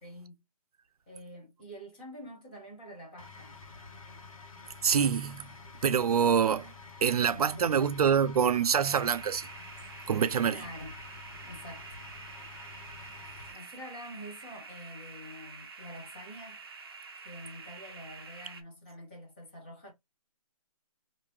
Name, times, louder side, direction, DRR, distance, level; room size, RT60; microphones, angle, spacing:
voice 1, 0.0-0.4 1.1-3.5 6.5-6.6 7.3-7.9 10.5-10.9 11.4-11.9 13.5-16.6 17.2-19.9, equal, 15° left, 0.9 m, -46 dB
sound 1, 3.2-13.5, left 4 dB, 65° left, 1.2 m, -49 dB
voice 2, 4.8-5.5 5.8-6.7 7.0-9.5 10.1-10.6, right 7 dB, 85° right, 0.5 m, -25 dB
sound 2, 8.8-18.6, right 4 dB, 40° right, 0.6 m, -48 dB
3.6 x 2.6 x 2.9 m
hypercardioid pair, 180°, 19 cm